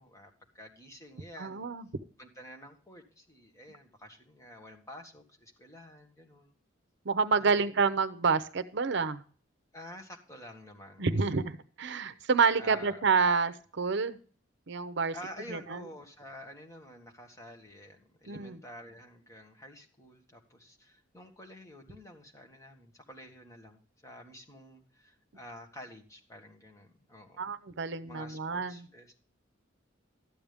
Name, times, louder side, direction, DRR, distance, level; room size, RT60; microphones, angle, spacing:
voice 1, 0.0-1.7 2.2-6.5 7.3-7.7 9.7-11.3 12.6-13.1 15.1-27.5 28.0-29.2, left 1 dB, 15° left, 2 dB, 1.7 m, -49 dB
voice 2, 1.4-1.9 7.1-9.2 11.0-14.2 14.7-15.1 15.5-15.8 18.3-18.6 27.4-28.8, right 5 dB, 65° right, 12 dB, 0.7 m, -28 dB
12.5 x 8.7 x 3.5 m, 0.42 s
head